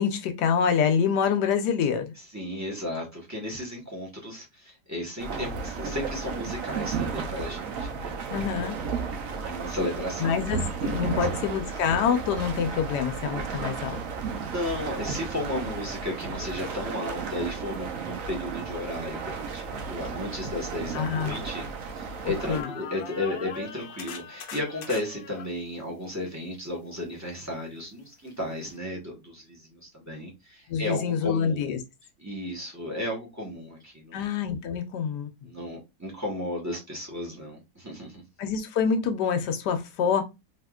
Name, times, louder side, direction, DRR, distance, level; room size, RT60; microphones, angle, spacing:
voice 1, 0.0-2.1 8.3-8.8 10.2-14.0 20.9-21.4 22.5-22.7 30.7-31.8 34.1-35.3 38.4-40.2, left 7 dB, 85° left, 1.3 m, -26 dB
voice 2, 2.3-8.2 9.4-10.6 11.1-11.4 14.4-21.7 21.9-31.8 32.2-34.3 35.4-38.2, left 1 dB, 10° right, 1.0 m, -34 dB
sound 1, 5.2-22.6, right 5 dB, 65° right, 1.0 m, -34 dB
sound 2, 19.6-19.7 20.3-22.1 22.3-25.5 28.3-28.4 28.7-28.8, left 6 dB, 65° left, 0.9 m, -42 dB
3.5 x 2.8 x 2.3 m
omnidirectional pair, 1.7 m